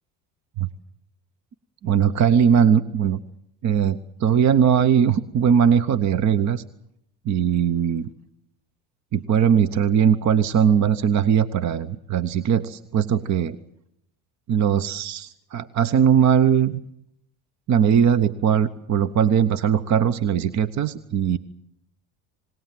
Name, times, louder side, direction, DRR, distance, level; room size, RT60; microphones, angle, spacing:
voice 1, 1.8-3.2 3.6-6.6 7.2-8.1 9.1-13.6 14.5-16.8 17.7-21.4, right 8 dB, 45° right, 16 dB, 0.9 m, -20 dB
26.5 x 20.0 x 7.6 m, 0.77 s
supercardioid pair, 85°, 39 cm